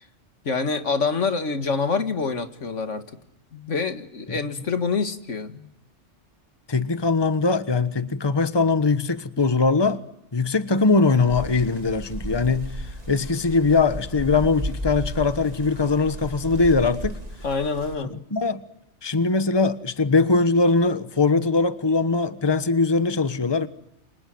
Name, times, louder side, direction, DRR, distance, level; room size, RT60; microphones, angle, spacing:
voice 1, 0.5-3.1 3.5-5.7 17.4-18.1, left 4 dB, 80° left, 2.2 m, -26 dB
voice 2, 6.7-10.0 10.3-17.2 18.1-18.6 19.0-23.7, left 3 dB, 20° left, 1.2 m, -21 dB
sound 1, 11.3-18.0, right 1 dB, 30° right, 2.8 m, -34 dB
29.0 x 26.0 x 7.8 m
omnidirectional pair, 1.2 m